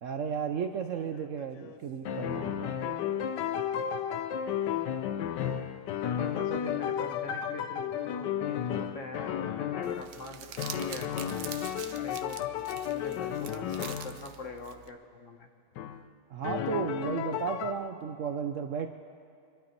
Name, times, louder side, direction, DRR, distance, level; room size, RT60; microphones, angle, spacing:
voice 1, 0.0-2.8 16.3-18.9, right 7 dB, 60° right, 6 dB, 0.8 m, -34 dB
sound 1, 1.0-1.7 2.0-10.1 10.6-14.2 15.8-16.0 16.4-17.7, left 9 dB, 80° left, 1.3 m, -33 dB
voice 2, 6.0-11.1 12.0-12.4 12.8-15.5, left 3 dB, 50° left, 4 dB, 1.3 m, -42 dB
Crumpling crinkling, 9.8-14.9, right 9 dB, 85° right, 1.4 m, -45 dB
25.5 x 11.5 x 4.5 m, 2.5 s
omnidirectional pair, 1.8 m